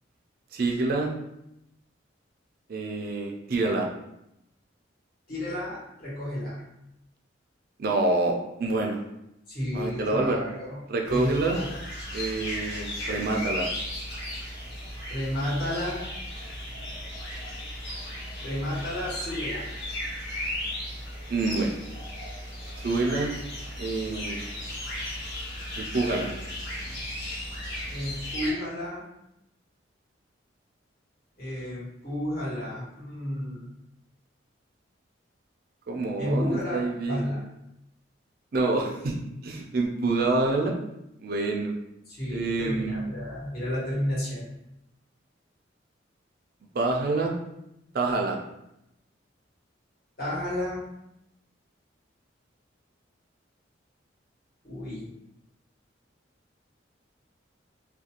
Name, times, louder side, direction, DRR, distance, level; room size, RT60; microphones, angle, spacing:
voice 1, 0.5-1.1 2.7-3.9 7.8-9.0 9.7-10.4 10.9-11.6 12.1-13.7 21.3-21.8 22.8-23.3 23.8-24.4 25.8-26.3 35.9-37.2 38.5-39.2 39.4-40.7 41.2-41.7 42.3-43.0 46.7-47.3 47.9-48.4, right 2 dB, 50° right, 1 dB, 0.4 m, -27 dB
voice 2, 5.3-6.7 9.5-10.8 11.0-11.7 15.1-16.0 18.4-19.6 27.9-29.0 31.4-33.7 36.2-36.8 37.1-37.4 42.1-44.5 50.2-50.8 54.6-55.1, left 1 dB, 50° left, -9 dB, 1.2 m, -32 dB
sound 1, 11.1-28.5, left 1 dB, 70° left, 0.9 m, -36 dB
2.5 x 2.2 x 2.8 m, 0.85 s
head